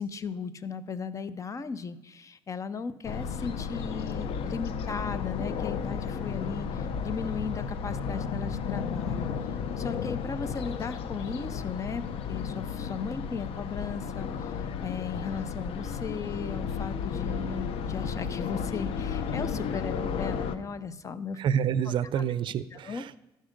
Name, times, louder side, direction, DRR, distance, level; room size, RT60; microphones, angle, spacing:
voice 1, 0.0-21.4 22.1-22.2 22.7-23.2, left 5 dB, 35° left, 15 dB, 0.5 m, -36 dB
sound 1, 3.0-20.6, left 6 dB, 75° left, 0.6 m, -33 dB
voice 2, 21.4-23.2, right 8 dB, 60° right, 17 dB, 0.4 m, -28 dB
12.5 x 5.3 x 5.1 m, 0.99 s
cardioid pair, 100°, 9 cm